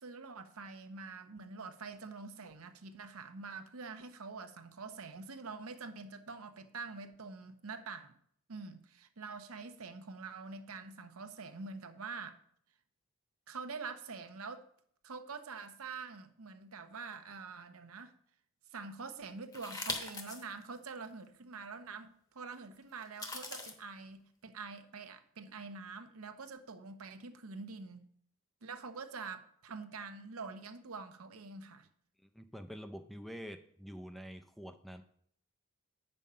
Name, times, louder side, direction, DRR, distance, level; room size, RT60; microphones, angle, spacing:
voice 1, 0.0-8.2 8.5-12.4 13.5-14.6 15.0-18.1 18.7-28.1 28.6-31.9, right 4 dB, 80° right, 8 dB, 0.8 m, -46 dB
sound 1, 19.5-20.4 21.0-21.1 23.0-23.7, left 2 dB, 15° left, 0.9 m, -40 dB
voice 2, 32.2-35.0, equal, ahead, 7 dB, 0.4 m, -47 dB
8.5 x 5.4 x 5.5 m, 0.65 s
head